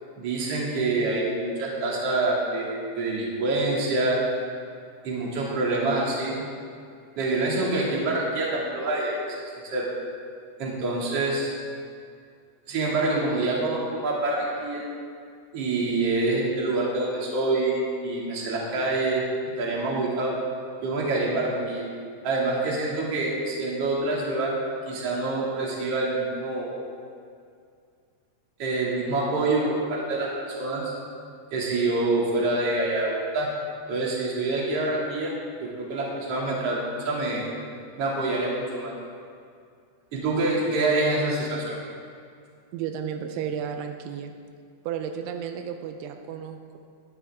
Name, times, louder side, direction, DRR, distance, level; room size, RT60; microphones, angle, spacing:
voice 1, 0.2-4.2 5.0-6.4 7.2-9.4 9.7-9.9 10.6-11.5 12.7-14.8 15.5-19.2 19.6-20.4 20.8-21.8 22.2-24.6 24.9-26.7 28.6-30.9 31.5-33.5 33.9-35.3 35.6-37.5 38.0-38.9 40.1-41.8, right 2 dB, 40° right, -4 dB, 2.7 m, -26 dB
voice 2, 42.7-44.3 44.8-46.8, right 8 dB, 85° right, 5 dB, 3.0 m, -33 dB
19.0 x 11.0 x 3.6 m, 2.3 s
omnidirectional pair, 5.4 m